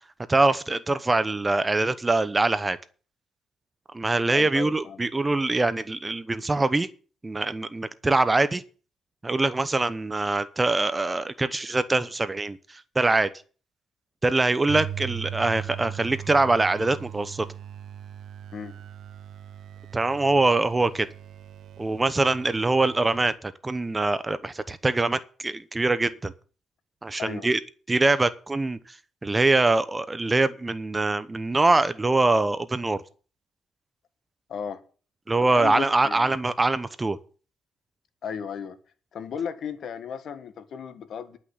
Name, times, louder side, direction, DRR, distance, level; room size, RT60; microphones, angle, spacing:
voice 1, 0.3-2.8 3.9-6.9 7.2-8.6 9.2-13.3 14.2-17.5 19.9-21.1 21.8-26.3 27.0-27.6 27.9-28.8 29.2-33.0 35.3-37.2, right 2 dB, 20° right, 0.9 m, -23 dB
voice 2, 4.3-5.0 18.5-18.7 27.2-27.5 34.5-34.8 35.5-36.4 38.2-38.8 39.1-41.4, left 7 dB, 65° left, 1.6 m, -35 dB
sound 1, 14.7-23.3, right 10 dB, 70° right, 0.8 m, -39 dB
11.0 x 6.1 x 8.0 m
cardioid pair, 90°, 0 cm